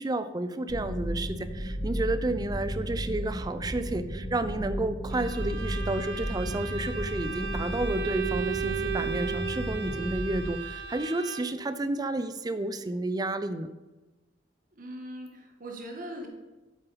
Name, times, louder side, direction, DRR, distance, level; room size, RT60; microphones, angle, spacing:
voice 1, 0.0-13.7, right 2 dB, 20° right, 12 dB, 0.4 m, -31 dB
sound 1, 0.7-10.4, equal, 60° left, 2.4 m, -34 dB
Bowed string instrument, 5.1-11.7, right 6 dB, 70° right, 0.7 m, -36 dB
voice 2, 14.7-16.3, right 1 dB, 45° right, 2 dB, 1.5 m, -40 dB
8.1 x 7.6 x 4.1 m, 1.1 s
head